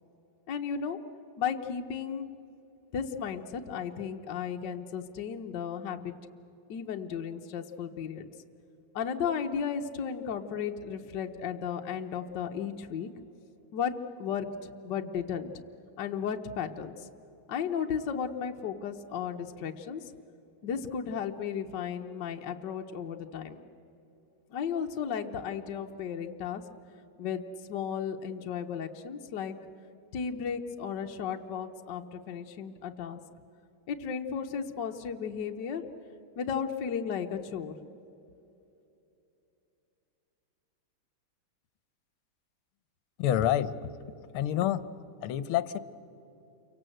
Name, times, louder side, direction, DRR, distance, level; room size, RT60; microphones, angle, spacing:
voice 1, 0.5-1.0 1.4-2.3 2.9-6.2 6.7-8.3 8.9-13.1 13.7-15.5 16.0-17.1 17.5-20.0 20.6-23.6 24.5-26.6 27.2-27.4 27.7-29.5 30.1-33.2 33.9-35.8 36.4-37.7, left 7 dB, 60° left, 4 dB, 1.4 m, -34 dB
voice 2, 43.2-43.8 44.3-44.9 45.2-45.8, left 11 dB, 80° left, 15 dB, 1.7 m, -27 dB
29.0 x 24.0 x 7.8 m, 2.9 s
omnidirectional pair, 2.4 m